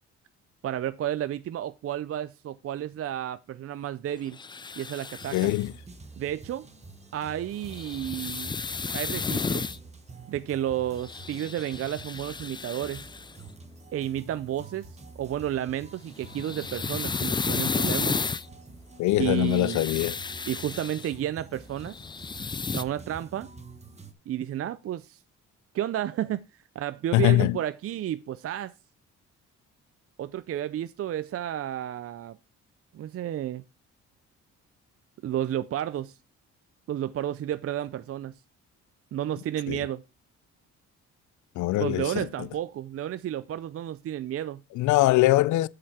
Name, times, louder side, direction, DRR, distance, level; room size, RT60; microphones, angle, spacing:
voice 1, 0.6-4.4 4.8-5.6 6.2-6.7 7.1-8.5 8.9-9.8 10.3-13.1 13.9-18.2 19.2-19.9 20.5-22.0 22.7-23.5 24.3-25.2 25.7-26.5 26.8-28.7 30.2-32.4 32.9-33.6 35.2-36.2 36.9-38.3 39.1-40.0 41.8-44.6, right 11 dB, 50° right, 0.5 m, -32 dB
sound 1, 4.3-5.7 7.6-9.8 11.0-13.3 16.1-18.5 19.2-21.1 21.8-22.8, left 4 dB, 15° left, 0.3 m, -32 dB
sound 2, 5.2-24.1, right 3 dB, 20° right, 1.3 m, -47 dB
voice 2, 5.3-5.7 19.0-20.2 27.1-27.6 39.7-39.8 41.6-42.5 44.8-45.7, left 17 dB, 75° left, 0.5 m, -23 dB
7.5 x 6.7 x 4.2 m
cardioid pair, 90°, 30 cm